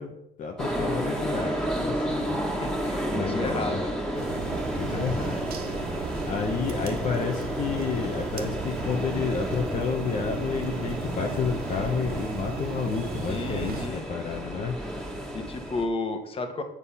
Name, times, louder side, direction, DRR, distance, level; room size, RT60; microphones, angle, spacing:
voice 1, 0.0-2.4 3.1-3.8 4.8-5.6 6.2-14.8, left 5 dB, 50° left, 2 dB, 1.1 m, -30 dB
sound 1, 0.6-15.9, equal, ahead, 1.9 m, -32 dB
voice 2, 2.5-4.0 4.9-5.0 13.3-14.0 15.3-16.6, left 3 dB, 35° left, 7 dB, 1.4 m, -33 dB
sound 2, 4.1-13.9, right 5 dB, 65° right, 1.1 m, -36 dB
8.6 x 5.3 x 5.7 m, 0.83 s
cardioid pair, 110°, 17 cm